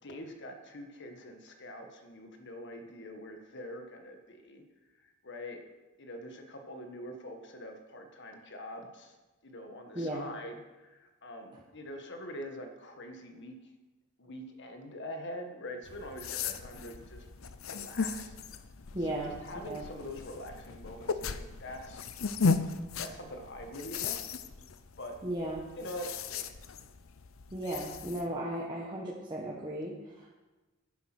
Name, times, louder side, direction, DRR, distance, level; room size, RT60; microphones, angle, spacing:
voice 1, 0.0-4.6 5.2-5.6 6.0-9.2 9.4-13.5 14.2-17.3 17.6-18.4 19.0-22.1 23.0-24.4 25.0-25.2 25.8-26.5, left 1 dB, 60° left, 4 dB, 1.7 m, -44 dB
voice 2, 9.9-10.3 11.5-11.6 18.9-19.3 19.7-19.8 25.2-25.7 27.5-30.3, right 1 dB, 20° right, -4 dB, 1.5 m, -36 dB
sound 1, 15.8-28.3, left 4 dB, 75° left, 0.7 m, -36 dB
10.5 x 10.5 x 6.2 m, 1.2 s
head